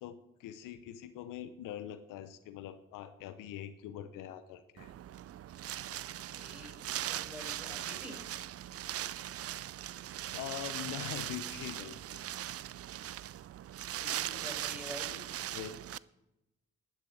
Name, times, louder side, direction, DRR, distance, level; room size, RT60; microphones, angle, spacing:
voice 1, 0.0-4.9 10.3-12.5 15.5-15.8, left 11 dB, 85° left, 11 dB, 0.7 m, -43 dB
Wind, 4.8-16.0, right 12 dB, 50° right, 0.4 m, -40 dB
voice 2, 6.3-6.8 7.1-8.2 13.9-15.3, left 1 dB, 5° right, 0 dB, 5.9 m, -47 dB
11.5 x 7.6 x 7.7 m, 0.93 s
supercardioid pair, 50°, 31 cm